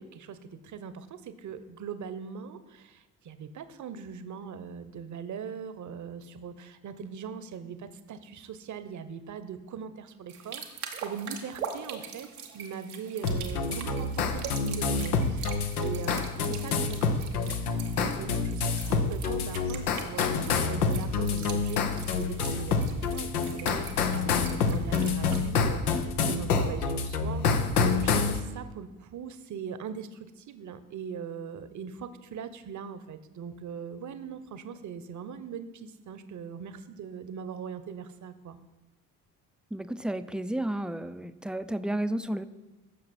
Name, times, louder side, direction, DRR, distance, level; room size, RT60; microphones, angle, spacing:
voice 1, 0.0-38.6, right 7 dB, 40° right, 12 dB, 1.0 m, -41 dB
sound 1, 10.3-25.5, right 7 dB, 85° right, 1.0 m, -43 dB
sound 2, 13.2-28.4, left 4 dB, 85° left, 0.8 m, -28 dB
voice 2, 39.7-42.5, right 1 dB, ahead, 12 dB, 0.5 m, -32 dB
15.0 x 6.5 x 4.4 m, 1.1 s
figure-of-eight pair, 45°, 44 cm